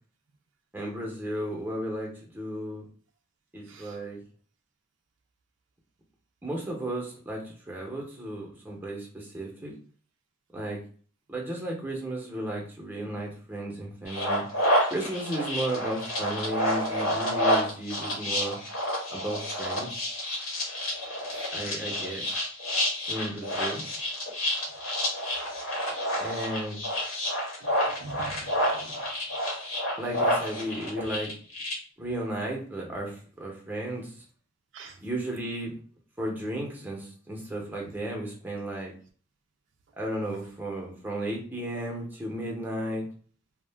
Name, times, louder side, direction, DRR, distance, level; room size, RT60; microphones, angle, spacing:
voice 1, 0.7-2.8 3.5-4.2 6.4-9.7 10.5-10.8 11.3-14.4 14.9-18.6 19.1-20.1 21.5-22.3 23.1-23.8 26.2-26.8 30.0-31.3 32.0-34.3 35.0-35.7 36.2-38.9 40.0-43.1, right 1 dB, 10° right, -1 dB, 0.7 m, -34 dB
sound 1, 14.1-31.7, equal, 85° left, 1.0 m, -29 dB
voice 2, 27.6-29.0 34.7-35.0, right 3 dB, 65° right, 5 dB, 0.3 m, -45 dB
2.3 x 2.1 x 3.3 m, 0.43 s
head